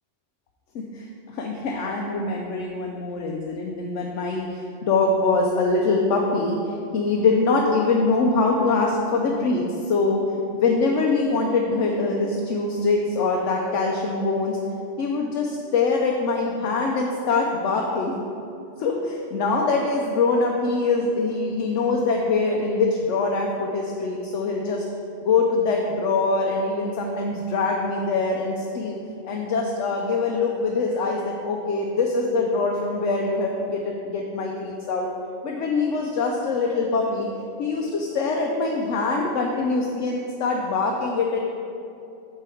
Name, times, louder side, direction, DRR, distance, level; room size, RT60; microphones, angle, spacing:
voice 1, 0.7-10.2 10.5-14.6 15.0-18.2 18.8-24.8 25.2-29.0 29.2-35.1 35.4-37.3 37.6-41.4, left 3 dB, 80° left, 0 dB, 1.0 m, -23 dB
7.5 x 4.6 x 4.9 m, 2.6 s
omnidirectional pair, 1.2 m